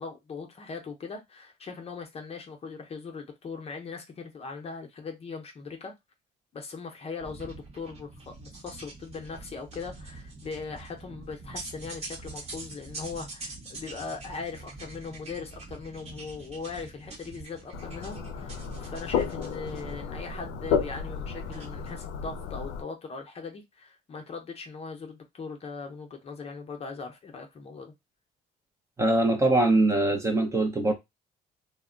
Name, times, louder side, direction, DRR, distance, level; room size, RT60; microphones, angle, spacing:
voice 1, 0.0-5.9 6.5-27.9, left 4 dB, 35° left, 0.7 m, -40 dB
sound 1, 7.2-21.9, right 3 dB, 40° right, 1.0 m, -44 dB
sound 2, 17.7-22.8, left 7 dB, 85° left, 0.4 m, -32 dB
voice 2, 29.0-30.9, right 2 dB, 15° right, 0.6 m, -22 dB
2.2 x 2.1 x 3.7 m
cardioid pair, 110°, 17 cm